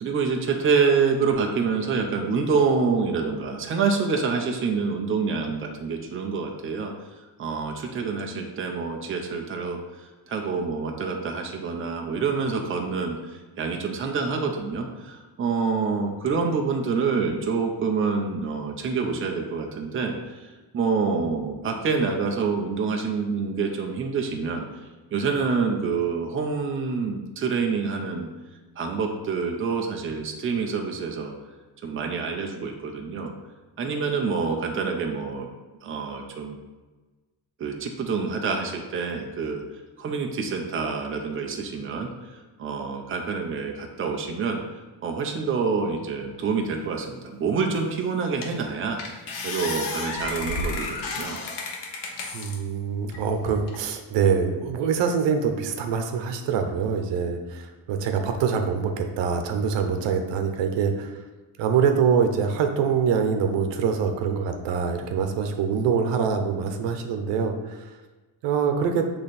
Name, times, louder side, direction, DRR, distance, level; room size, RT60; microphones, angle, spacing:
voice 1, 0.0-6.9 7.4-20.5 20.7-24.6 25.1-28.3 28.8-31.3 31.8-33.3 33.8-35.5 35.8-36.6 37.6-39.6 40.0-42.1 42.6-44.6 45.0-51.4, right 5 dB, 30° right, 2 dB, 0.8 m, -27 dB
sound 1, 47.8-47.9 48.4-48.7 49.0-52.6 53.1-53.8, left 3 dB, 80° left, 1.3 m, -32 dB
voice 2, 52.3-61.1 61.6-67.9 68.4-69.0, right 6 dB, 85° right, 5 dB, 0.9 m, -24 dB
8.5 x 3.3 x 4.2 m, 1.3 s
cardioid pair, 155°, 42 cm